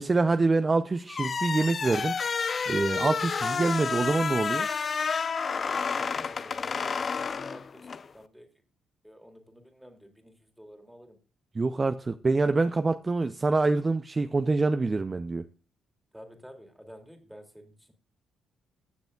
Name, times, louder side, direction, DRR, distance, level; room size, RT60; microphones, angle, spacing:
voice 1, 0.0-2.2 2.7-4.7 11.5-15.5, right 3 dB, 25° right, 0.5 m, -25 dB
sound 1, 1.1-8.1, left 5 dB, 40° left, 0.6 m, -30 dB
voice 2, 5.7-8.5 9.0-11.2 16.1-17.9, equal, ahead, 2.3 m, -50 dB
15.5 x 6.9 x 2.3 m
cardioid pair, 90°, 0 cm